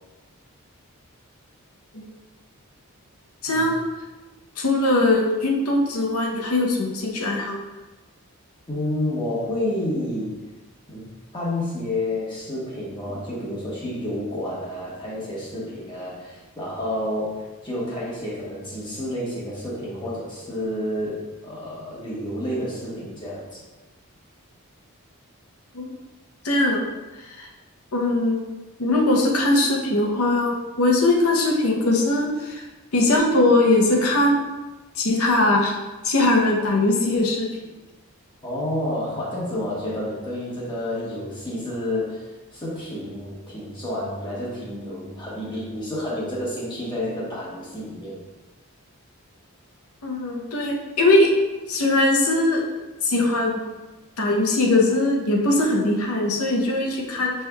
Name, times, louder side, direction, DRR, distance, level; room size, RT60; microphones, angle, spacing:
voice 1, 3.4-3.8 4.6-7.6 25.7-25.9 26.4-26.8 27.2-27.5 27.9-28.4 28.8-32.6 32.9-34.5 35.0-35.8 36.0-37.5 50.0-51.3 51.7-52.6 53.0-53.6 54.2-57.3, left 2 dB, 85° left, 0 dB, 0.8 m, -20 dB
voice 2, 8.7-10.4 10.9-11.1 11.3-23.6 38.4-48.2, left 1 dB, 20° left, -7 dB, 1.2 m, -30 dB
6.2 x 3.3 x 2.3 m, 1.1 s
head